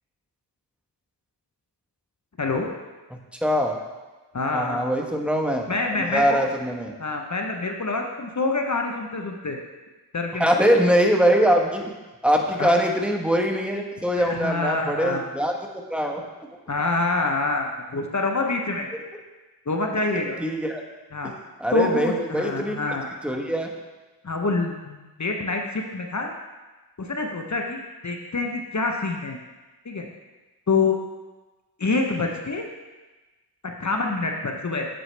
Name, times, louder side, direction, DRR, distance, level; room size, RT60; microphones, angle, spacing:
voice 1, 2.4-2.7 4.3-4.9 5.7-6.5 7.0-9.6 10.1-10.7 12.6-12.7 14.2-15.2 16.7-18.9 19.7-20.4 21.1-21.3 21.7-23.1 24.2-26.3 27.0-29.4 29.8-30.1 30.7-31.0 31.8-32.7 33.8-34.9, left 3 dB, 40° left, 2 dB, 0.9 m, -26 dB
voice 2, 3.4-3.8 4.5-5.7 6.0-6.9 10.4-11.9 12.2-16.2 20.4-20.8 21.2-21.3 21.6-23.0 23.2-23.7, equal, 5° right, 1 dB, 1.1 m, -22 dB
7.9 x 7.6 x 3.3 m, 1.2 s
cardioid pair, 45°, 42 cm